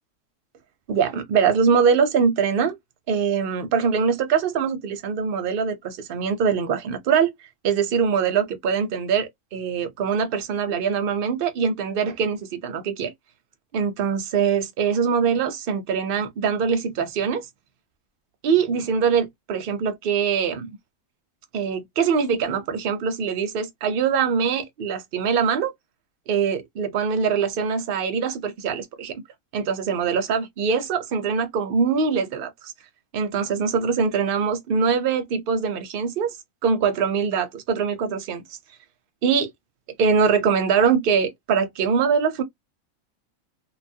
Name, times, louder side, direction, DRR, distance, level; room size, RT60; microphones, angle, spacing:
voice 1, 0.9-2.8 3.1-7.3 7.6-13.1 13.7-17.5 18.4-20.7 21.5-25.7 26.3-29.2 29.5-32.7 33.1-36.4 36.6-38.4 39.2-39.5 40.0-42.4, right 6 dB, 55° right, 0.7 m, -23 dB
2.7 x 2.4 x 2.6 m
omnidirectional pair, 1.4 m